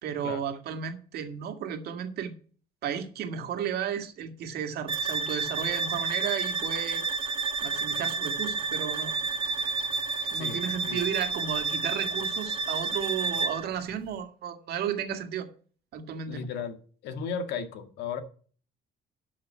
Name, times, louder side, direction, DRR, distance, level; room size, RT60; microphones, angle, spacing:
voice 1, 0.0-2.3 2.8-7.0 7.6-9.1 10.3-15.5 15.9-16.4, right 8 dB, 70° right, 2.0 m, -33 dB
sound 1, 4.9-13.7, right 4 dB, 30° right, 1.7 m, -30 dB
voice 2, 10.3-11.0 16.3-16.8 17.0-18.2, left 6 dB, 80° left, 1.8 m, -35 dB
12.0 x 5.9 x 5.6 m
cardioid pair, 110°, 17 cm